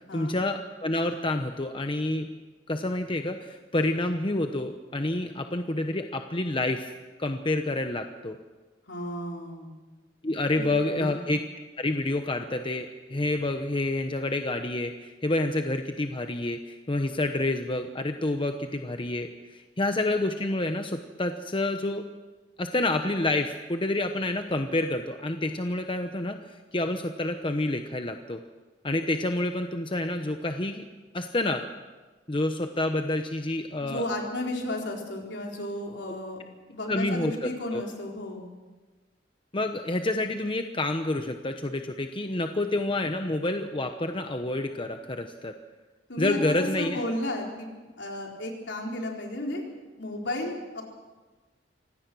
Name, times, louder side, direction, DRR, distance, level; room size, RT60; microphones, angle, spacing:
voice 1, 0.1-2.3 2.7-6.9 7.2-8.4 10.2-11.4 11.8-22.1 22.6-28.4 28.8-30.9 31.1-31.6 32.3-34.0 36.1-36.2 36.9-37.8 39.5-45.6 46.2-47.0, left 2 dB, 30° left, 6 dB, 1.0 m, -28 dB
voice 2, 8.9-9.7 10.6-11.3 33.8-36.4 36.7-38.4 46.1-49.7 50.0-50.8, left 1 dB, 70° left, 0 dB, 4.2 m, -33 dB
25.0 x 17.5 x 6.2 m, 1.3 s
head